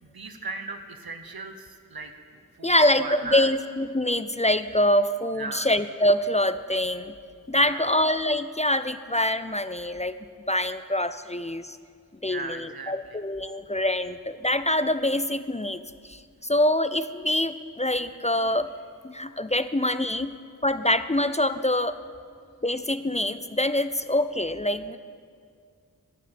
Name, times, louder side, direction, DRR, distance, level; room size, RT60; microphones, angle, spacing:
voice 1, 0.0-3.5 5.3-5.7 7.5-7.8 12.2-13.2 18.5-18.6, right 4 dB, 90° right, 6 dB, 1.0 m, -37 dB
voice 2, 2.6-7.1 7.5-10.1 10.5-11.8 12.2-12.6 12.9-18.7 19.0-20.3 20.6-22.0 22.6-25.0, left 1 dB, 20° left, 12 dB, 0.4 m, -25 dB
10.5 x 8.3 x 7.7 m, 2.1 s
wide cardioid pair, 50°, 35 cm